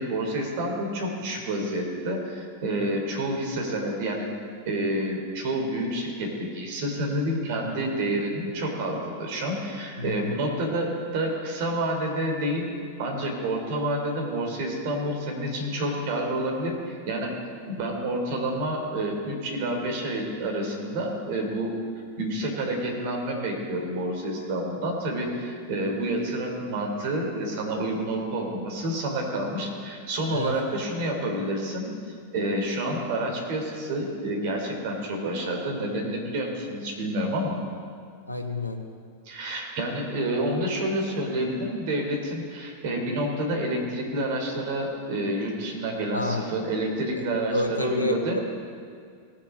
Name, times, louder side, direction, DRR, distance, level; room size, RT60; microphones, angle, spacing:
voice 1, 0.0-4.3 4.6-12.7 13.0-17.3 17.7-21.8 22.2-31.9 32.3-37.6 39.2-48.4, right 1 dB, 50° right, 0 dB, 3.1 m, -29 dB
voice 2, 10.0-10.4 30.3-30.5 38.3-38.8 46.1-46.5 47.2-47.3 47.5-48.4, left 2 dB, 85° left, 4 dB, 1.2 m, -29 dB
18.5 x 7.4 x 5.5 m, 2.2 s
figure-of-eight pair, 90°, 0 cm